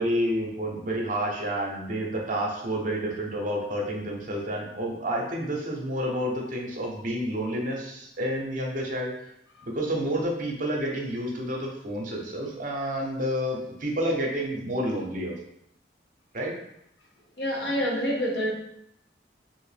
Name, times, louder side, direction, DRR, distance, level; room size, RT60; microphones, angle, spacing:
voice 1, 0.0-9.1 9.6-15.4 16.3-16.5, equal, 45° right, -1 dB, 0.6 m, -29 dB
voice 2, 17.4-18.5, equal, 65° left, -1 dB, 0.8 m, -27 dB
3.1 x 2.6 x 3.3 m, 0.77 s
head